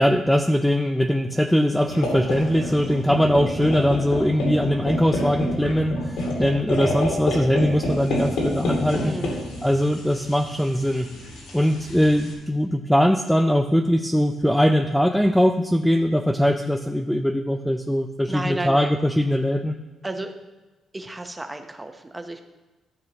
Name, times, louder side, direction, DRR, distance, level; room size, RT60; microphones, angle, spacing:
voice 1, 0.0-9.2 9.6-11.1 11.5-19.7, equal, ahead, 5 dB, 0.5 m, -21 dB
sound 1, 1.9-12.3, left 1 dB, 85° left, 2.5 m, -28 dB
voice 2, 9.0-9.3 18.3-18.9 20.0-20.3 20.9-22.4, right 2 dB, 15° right, 6 dB, 0.9 m, -32 dB
13.5 x 6.0 x 3.0 m, 1.2 s
cardioid pair, 90°, 0 cm